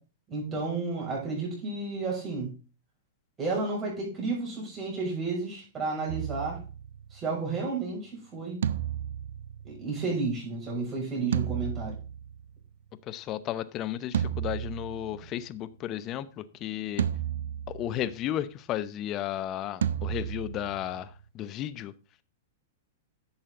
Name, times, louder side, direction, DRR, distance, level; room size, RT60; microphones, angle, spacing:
voice 1, 0.3-2.5 3.4-6.6 7.1-8.6 9.6-12.0, right 3 dB, 20° right, -2 dB, 6.2 m, -32 dB
sound 1, 6.1-7.4 8.6-10.3 11.3-12.7 14.1-15.5 17.0-18.2 19.8-21.2, right 10 dB, 80° right, 0.6 m, -33 dB
voice 2, 13.1-17.0 17.7-21.9, left 12 dB, 35° left, 15 dB, 0.8 m, -34 dB
11.5 x 7.5 x 3.8 m, 0.33 s
hypercardioid pair, 130°, 0 cm